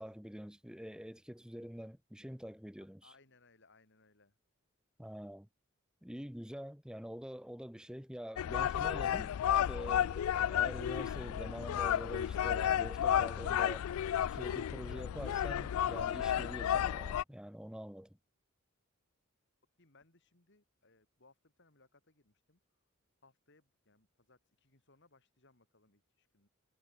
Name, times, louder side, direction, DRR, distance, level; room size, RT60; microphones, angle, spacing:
voice 1, 0.0-3.1 5.0-5.5 6.0-9.4 9.7-13.9 14.3-18.2, equal, 5° right, 1.3 m, -46 dB
voice 2, 3.0-4.3 19.8-22.6 23.2-26.5, left 3 dB, 55° left, 3.7 m, -67 dB
sound 1, 8.4-17.2, left 10 dB, 85° left, 0.3 m, -32 dB
head